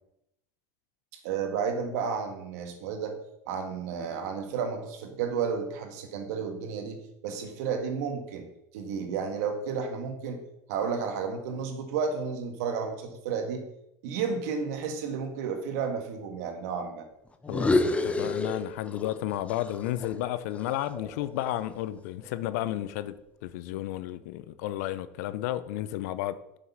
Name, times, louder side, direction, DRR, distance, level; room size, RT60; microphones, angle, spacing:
voice 1, 1.1-3.2 3.5-8.5 8.7-10.4 10.7-13.6 14.0-17.1, right 6 dB, 75° right, 1.7 m, -32 dB
sound 1, 17.4-19.2 19.5-21.7, left 2 dB, 15° left, 0.9 m, -29 dB
voice 2, 17.5-23.1 23.4-26.4, left 13 dB, 75° left, 0.7 m, -32 dB
7.9 x 6.5 x 5.6 m
supercardioid pair, 100°, 9 cm